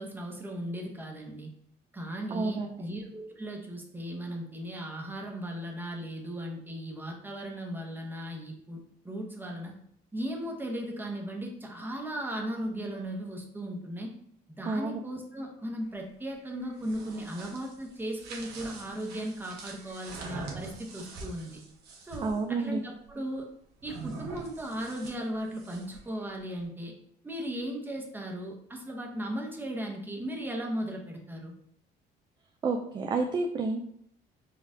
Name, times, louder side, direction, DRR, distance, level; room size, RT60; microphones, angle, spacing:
voice 1, 0.0-1.5 1.9-9.8 10.1-14.1 14.5-21.6 22.0-23.5 23.8-26.9 27.2-31.5, equal, 10° right, 1 dB, 0.8 m, -37 dB
voice 2, 2.3-2.7 14.7-15.0 22.2-22.8 32.6-33.8, right 3 dB, 25° right, 4 dB, 0.4 m, -29 dB
sound 1, 16.6-22.4 23.8-26.1, right 3 dB, 75° right, 1.1 m, -44 dB
4.2 x 2.4 x 3.7 m, 0.68 s
cardioid pair, 110°, 17 cm